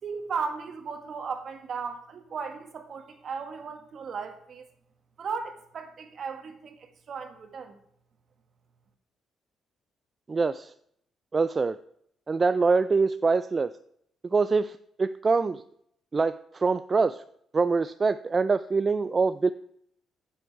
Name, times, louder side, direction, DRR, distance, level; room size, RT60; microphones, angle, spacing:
voice 1, 0.0-4.7 5.2-7.8, right 5 dB, 55° right, 6 dB, 1.6 m, -36 dB
voice 2, 10.3-10.7 11.3-11.8 12.3-13.7 14.2-15.6 16.1-17.2 17.5-19.5, right 4 dB, 30° right, 12 dB, 0.4 m, -24 dB
9.7 x 7.9 x 4.7 m, 0.69 s
cardioid pair, 90°, 0 cm